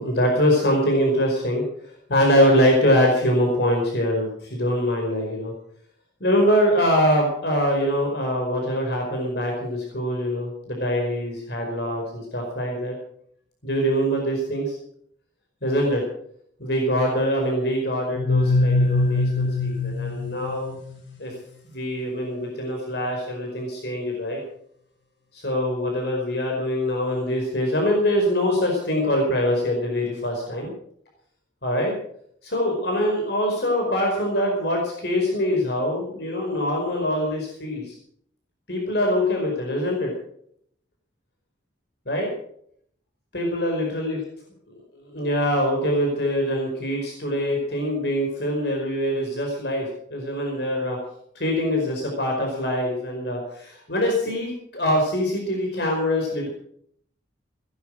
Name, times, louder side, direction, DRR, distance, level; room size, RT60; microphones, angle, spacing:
voice 1, 0.0-1.6 2.1-5.5 6.2-12.9 13.6-14.8 15.6-16.0 16.6-20.7 21.2-21.3 21.7-24.4 25.3-30.7 31.6-32.0 32.4-37.9 38.7-40.1 42.1-42.3 43.3-44.2 45.1-51.0 51.3-56.5, equal, 60° left, 0 dB, 4.9 m, -23 dB
sound 1, 18.2-21.0, left 2 dB, 90° left, 4.4 m, -22 dB
19.0 x 11.0 x 6.4 m, 0.67 s
head